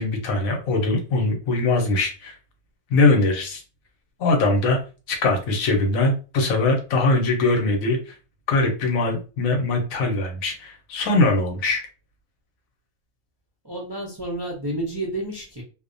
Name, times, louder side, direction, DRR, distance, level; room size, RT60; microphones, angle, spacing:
voice 1, 0.0-2.4 2.9-3.6 4.2-4.8 5.1-8.1 8.5-11.8, left 2 dB, 75° left, 3 dB, 1.0 m, -21 dB
voice 2, 13.6-15.6, right 1 dB, 45° right, -3 dB, 0.3 m, -30 dB
2.6 x 2.1 x 2.5 m, 0.34 s
omnidirectional pair, 1.5 m